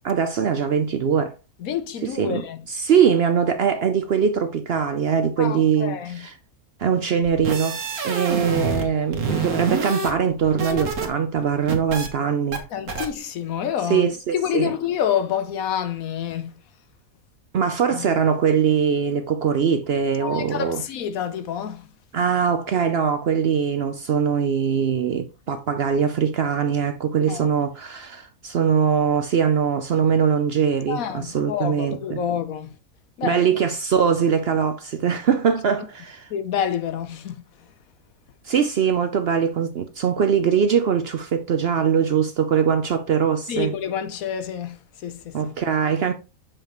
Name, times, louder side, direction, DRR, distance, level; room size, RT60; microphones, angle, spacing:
voice 1, 0.0-1.3 2.0-2.4 2.7-6.3 6.8-12.6 13.9-14.7 17.5-20.8 22.1-32.2 33.2-36.3 38.4-43.7 45.3-46.1, right 7 dB, 60° right, 0.7 m, -22 dB
voice 2, 1.6-2.6 5.4-6.3 9.3-9.6 12.5-16.6 17.9-18.2 20.2-21.9 27.3-27.5 30.9-32.7 33.2-33.6 36.3-37.4 43.5-45.5, left 9 dB, 75° left, 1.2 m, -28 dB
sound 1, 7.2-8.9 9.1-11.1 11.4-12.1 12.5-12.6 12.9-13.1, right 4 dB, 90° right, 1.7 m, -27 dB
7.3 x 5.2 x 3.0 m
omnidirectional pair, 1.5 m